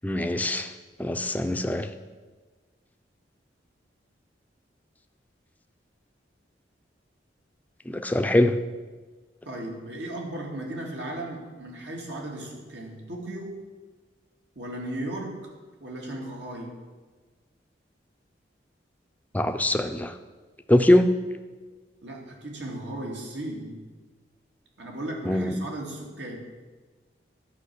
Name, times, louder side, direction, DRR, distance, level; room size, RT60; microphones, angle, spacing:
voice 1, 0.0-0.7 1.0-1.9 7.9-8.6 19.3-20.1 20.7-21.2 25.2-25.6, left 1 dB, 10° left, 7 dB, 0.5 m, -22 dB
voice 2, 9.4-13.6 14.6-15.5 15.8-16.8 22.0-23.8 24.8-26.5, right 1 dB, 70° right, -1 dB, 2.4 m, -36 dB
12.0 x 5.8 x 8.3 m, 1.4 s
head